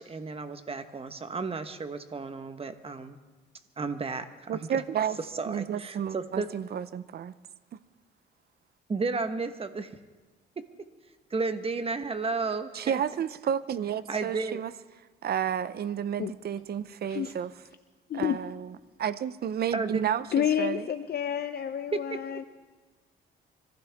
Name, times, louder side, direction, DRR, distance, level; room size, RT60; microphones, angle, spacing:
voice 1, 0.0-3.2 3.8-4.8 5.3-6.5 8.9-9.9 10.6-10.7 11.3-13.0 14.1-14.6 19.7-20.0 21.9-22.2, right 4 dB, 30° right, 9 dB, 1.3 m, -33 dB
voice 2, 4.5-5.2 5.5-7.3 7.7-7.8 12.7-14.7 15.2-17.5 18.1-20.9, right 9 dB, 50° right, 15 dB, 0.7 m, -31 dB
voice 3, 18.1-18.4 20.3-22.4, left 9 dB, 50° left, 8 dB, 0.7 m, -29 dB
24.5 x 15.5 x 3.6 m, 1.3 s
cardioid pair, 90°, 20 cm